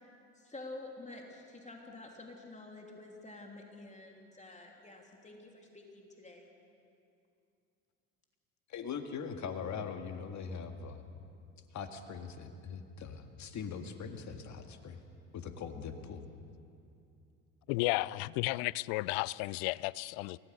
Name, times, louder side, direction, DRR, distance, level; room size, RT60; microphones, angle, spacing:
voice 1, 0.3-6.5, left 2 dB, 15° left, 1 dB, 3.2 m, -49 dB
voice 2, 8.7-11.0 11.7-15.0 15.3-16.3, left 6 dB, 45° left, 6 dB, 2.0 m, -41 dB
voice 3, 17.7-20.4, left 21 dB, 60° left, 22 dB, 0.6 m, -33 dB
24.5 x 17.5 x 6.6 m, 2.5 s
hypercardioid pair, 75°, 40 cm